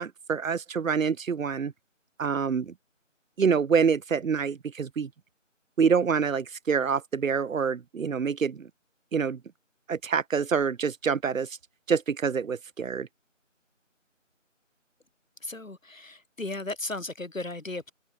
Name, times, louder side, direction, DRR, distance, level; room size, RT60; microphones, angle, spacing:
voice 1, 0.0-1.7 2.2-2.7 3.4-5.1 5.8-8.7 9.1-9.4 9.9-11.5 11.9-13.1, right 6 dB, 90° right, 0.6 m, -26 dB
voice 2, 15.4-17.9, left 2 dB, 85° left, 1.8 m, -35 dB
open air
figure-of-eight pair, 180°, 39 cm